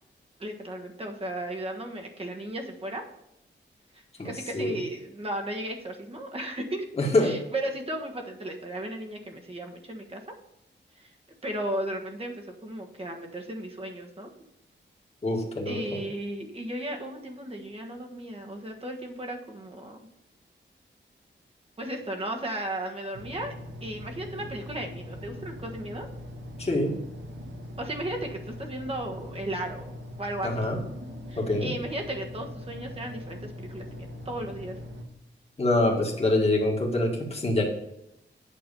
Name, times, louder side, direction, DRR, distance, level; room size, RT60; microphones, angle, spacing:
voice 1, 0.4-3.0 3.9-6.8 7.2-10.2 10.9-11.1 11.4-14.3 15.6-20.0 21.8-23.5 23.8-26.1 27.8-29.9 30.2-30.6 31.3-34.8, right 1 dB, 30° right, 2 dB, 1.4 m, -35 dB
voice 2, 7.0-7.4 15.2-16.0 26.6-26.9 30.4-30.8 31.4-31.7 35.6-37.6, left 2 dB, 30° left, -1 dB, 1.7 m, -25 dB
sound 1, 23.1-35.0, left 1 dB, 75° right, 1.4 m, -41 dB
8.7 x 6.2 x 5.4 m, 0.85 s
wide cardioid pair, 150°, 19 cm